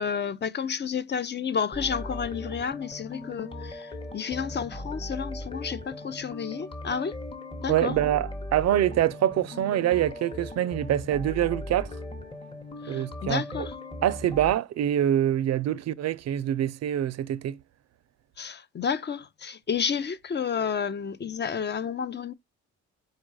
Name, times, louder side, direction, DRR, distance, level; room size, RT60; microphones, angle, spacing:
voice 1, 0.0-7.2 7.6-7.9 12.8-13.7 18.4-22.3, left 6 dB, 35° left, 0.5 m, -31 dB
sound 1, 1.7-14.5, left 1 dB, 15° left, 1.0 m, -38 dB
voice 2, 7.7-12.0 12.9-13.7 14.0-17.6, right 11 dB, 60° right, 0.5 m, -25 dB
4.5 x 2.3 x 4.7 m
cardioid pair, 90°, 30 cm